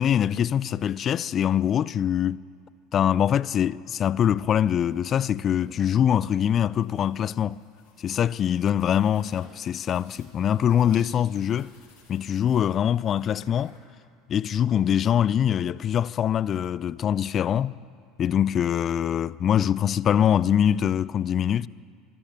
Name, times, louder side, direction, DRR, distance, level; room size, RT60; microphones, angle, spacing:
voice 1, 0.0-2.4 2.9-7.6 8.0-11.7 12.1-13.8 14.3-17.8 18.2-21.7, left 9 dB, 40° left, 0.4 m, -23 dB
sound 1, 4.6-13.8, left 3 dB, 60° left, 5.5 m, -56 dB
24.5 x 13.0 x 8.9 m
figure-of-eight pair, 70°, 0 cm